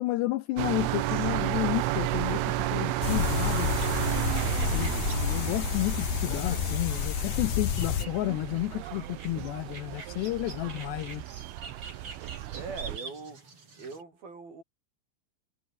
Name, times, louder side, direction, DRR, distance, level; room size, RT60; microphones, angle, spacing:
voice 1, 0.0-3.7 4.7-11.2, left 17 dB, 75° left, 2.7 m, -31 dB
sound 1, 0.6-13.0, right 15 dB, 85° right, 3.8 m, -32 dB
sound 2, 1.1-14.0, right 4 dB, 30° right, 5.2 m, -48 dB
sound 3, 3.0-8.1, left 11 dB, 60° left, 2.4 m, -30 dB
voice 2, 12.5-13.5 13.8-14.6, right 4 dB, 50° right, 9.1 m, -42 dB
omnidirectional pair, 5.5 m